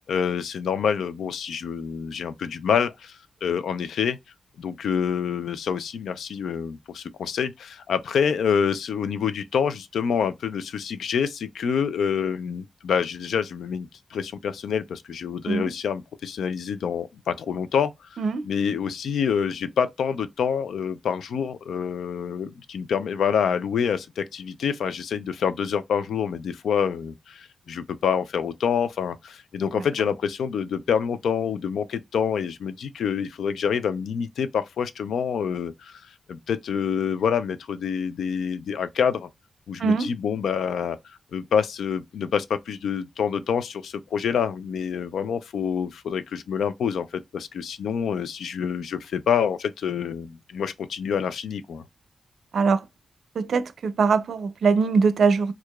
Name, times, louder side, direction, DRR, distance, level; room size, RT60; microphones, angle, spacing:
voice 1, 0.1-4.2 4.6-36.0 36.3-39.3 39.7-41.0 41.3-51.8, left 7 dB, 90° left, 0.4 m, -27 dB
voice 2, 39.8-40.1 52.5-52.8 53.4-55.5, right 5 dB, 70° right, 0.4 m, -22 dB
4.6 x 2.4 x 2.3 m
wide cardioid pair, 130°, 0 cm